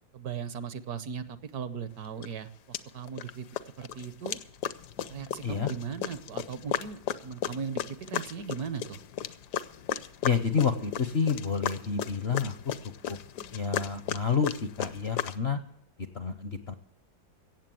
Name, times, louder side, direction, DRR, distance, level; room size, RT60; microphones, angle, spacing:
voice 1, 0.1-3.5 3.8-4.4 5.1-9.0, right 6 dB, 65° right, 13 dB, 1.1 m, -38 dB
sound 1, 2.2-2.3 2.7-3.3 3.6-15.4, left 10 dB, 70° left, 1.2 m, -35 dB
voice 2, 10.2-12.5 13.1-13.2 13.5-15.6 16.1-16.7, left 6 dB, 55° left, 9 dB, 0.7 m, -29 dB
17.0 x 7.3 x 7.6 m, 0.73 s
omnidirectional pair, 2.0 m